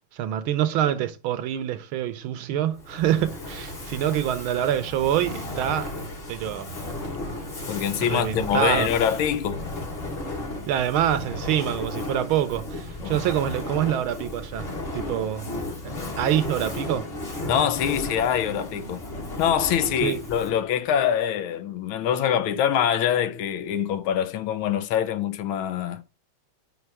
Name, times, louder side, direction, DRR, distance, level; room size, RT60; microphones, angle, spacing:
voice 1, 0.1-5.9 6.3-6.7 7.9-8.9 10.7-15.5 15.8-17.1 20.0-20.2, right 11 dB, 85° right, 1.6 m, -26 dB
Fire, 2.7-20.7, left 1 dB, 30° left, 1.5 m, -34 dB
voice 2, 7.7-9.6 13.0-13.2 17.5-19.0 19.4-26.0, left 9 dB, 85° left, 1.6 m, -24 dB
5.6 x 5.1 x 4.8 m
omnidirectional pair, 2.2 m